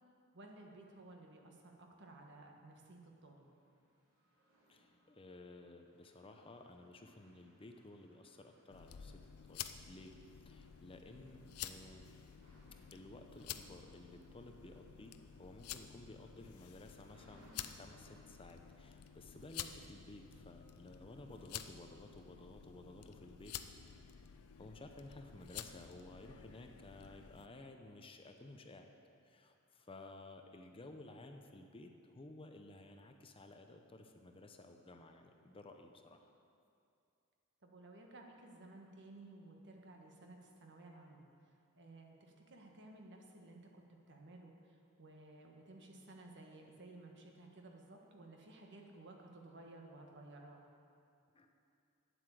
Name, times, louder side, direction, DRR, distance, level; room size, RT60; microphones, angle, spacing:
voice 1, 0.3-3.4 37.6-41.3 41.7-43.8 44.1-50.6, right 2 dB, 55° right, 1 dB, 1.4 m, -56 dB
sound 1, 3.4-22.6, equal, 80° right, 3.4 m, -71 dB
voice 2, 4.7-12.1 12.9-23.5 24.6-28.9 29.2-36.3 51.3-51.5, left 2 dB, 25° left, 5 dB, 0.7 m, -55 dB
sound 2, 8.7-27.5, left 9 dB, 90° left, 0.5 m, -51 dB
9.7 x 8.1 x 7.6 m, 2.5 s
head